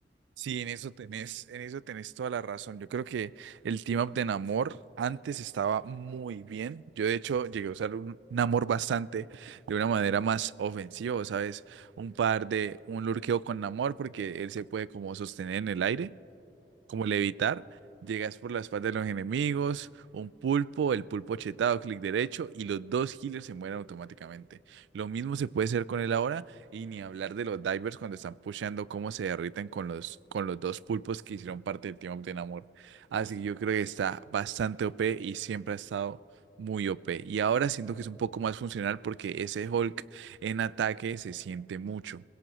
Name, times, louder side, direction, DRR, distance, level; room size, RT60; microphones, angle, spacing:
voice 1, 0.4-16.1 16.9-17.6 18.0-19.9 20.1-26.5 26.7-36.2 36.6-42.2, right 7 dB, 80° right, 0.3 m, -32 dB
27.0 x 17.0 x 3.0 m
head